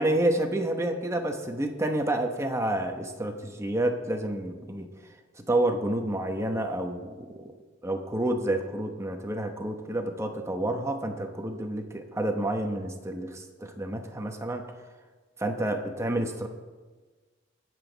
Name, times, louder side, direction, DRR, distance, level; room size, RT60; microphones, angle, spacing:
voice 1, 0.0-4.9 5.5-7.5 7.8-14.6 15.4-16.5, right 1 dB, 15° right, 4 dB, 1.0 m, -29 dB
21.0 x 8.0 x 4.0 m, 1.3 s
head